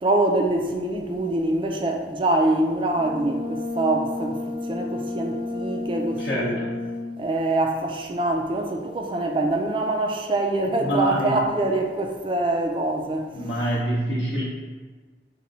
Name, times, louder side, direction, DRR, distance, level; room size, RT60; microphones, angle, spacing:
voice 1, 0.0-6.6 7.2-13.3, right 2 dB, 30° right, 0.3 m, -24 dB
Brass instrument, 2.9-7.3, left 2 dB, 85° right, 1.0 m, -31 dB
voice 2, 6.2-6.7 10.8-11.4 13.3-14.4, equal, 60° left, 0.7 m, -25 dB
4.2 x 2.2 x 3.8 m
head